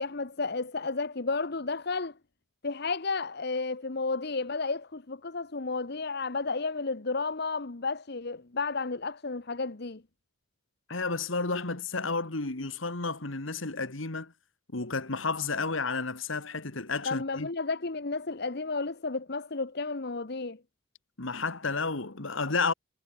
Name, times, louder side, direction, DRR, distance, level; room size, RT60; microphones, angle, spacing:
voice 1, 0.0-2.1 2.6-10.0 17.0-20.6, left 3 dB, 50° left, 1.0 m, -32 dB
voice 2, 10.9-14.3 14.7-17.5 21.2-22.7, left 4 dB, 70° left, 1.9 m, -31 dB
head